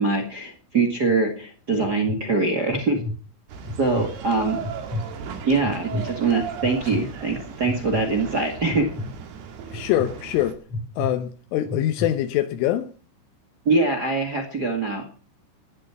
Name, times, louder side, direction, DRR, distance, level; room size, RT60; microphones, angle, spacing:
voice 1, 0.0-3.0 3.8-4.6 5.5-8.9 13.6-15.1, right 3 dB, 80° right, 0.9 m, -23 dB
sound 1, 1.1-1.2 1.7-2.2 2.7-3.1 3.6-4.1 4.6-5.1 5.6-6.1 6.6-7.0 7.7-8.0 8.7-9.1 9.7-10.1 10.7-11.1 11.6-12.1, left 2 dB, 40° left, 3.4 m, -30 dB
sound 2, 3.5-10.5, right 6 dB, 60° right, 3.9 m, -37 dB
voice 2, 9.7-10.6 11.0-12.9, left 13 dB, 80° left, 3.5 m, -24 dB
17.5 x 11.5 x 5.9 m
omnidirectional pair, 5.7 m